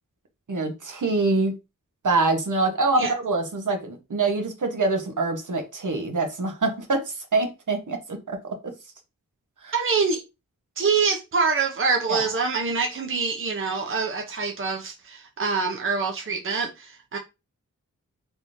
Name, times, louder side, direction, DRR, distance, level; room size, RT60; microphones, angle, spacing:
voice 1, 0.5-1.6 2.0-8.7 9.6-9.7 12.1-12.2, right 3 dB, 60° right, 1.1 m, -25 dB
voice 2, 9.7-10.2 10.8-17.2, right 5 dB, 40° right, 0.7 m, -25 dB
3.5 x 3.2 x 2.7 m
cardioid pair, 50°, 34 cm